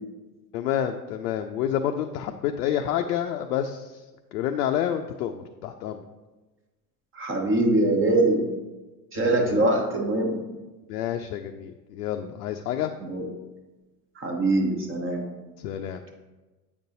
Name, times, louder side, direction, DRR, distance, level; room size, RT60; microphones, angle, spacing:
voice 1, 0.5-4.0 4.3-6.0 9.2-9.7 10.9-12.9 15.6-16.0, left 10 dB, 70° left, 5 dB, 0.5 m, -29 dB
voice 2, 7.1-8.5 9.1-10.4 13.0-13.3 14.2-15.3, right 2 dB, 25° right, 1 dB, 1.1 m, -23 dB
8.3 x 5.2 x 2.7 m, 1.2 s
figure-of-eight pair, 75°, 49 cm